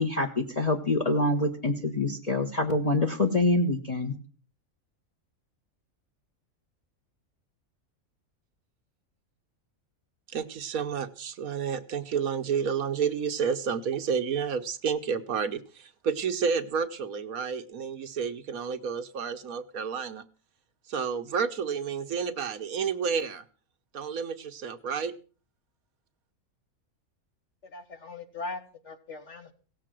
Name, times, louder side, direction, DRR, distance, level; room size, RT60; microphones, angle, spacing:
voice 1, 0.0-4.1, left 2 dB, 30° left, 1.4 m, -26 dB
voice 2, 10.3-20.2 20.9-23.4 23.9-25.1, right 6 dB, 85° right, 1.5 m, -30 dB
voice 3, 27.7-29.5, left 3 dB, 55° left, 2.1 m, -40 dB
17.0 x 7.6 x 7.6 m
omnidirectional pair, 1.4 m